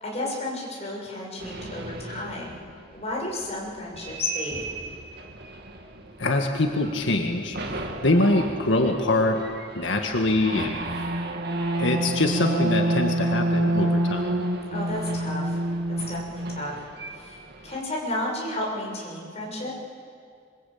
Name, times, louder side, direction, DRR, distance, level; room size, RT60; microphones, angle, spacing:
voice 1, 0.0-2.6 2.9-4.6 14.7-15.6 16.1-16.7 17.1-19.7, left 1 dB, 35° left, -3 dB, 7.0 m, -32 dB
sound 1, 1.4-2.7 3.9-6.4 6.8-7.2 7.5-17.8, right 1 dB, 60° right, 2.3 m, -29 dB
voice 2, 6.2-7.6 8.0-9.5 9.7-10.8 11.8-14.3, left 2 dB, 85° left, 3 dB, 1.8 m, -23 dB
26.5 x 23.5 x 8.7 m, 2.3 s
head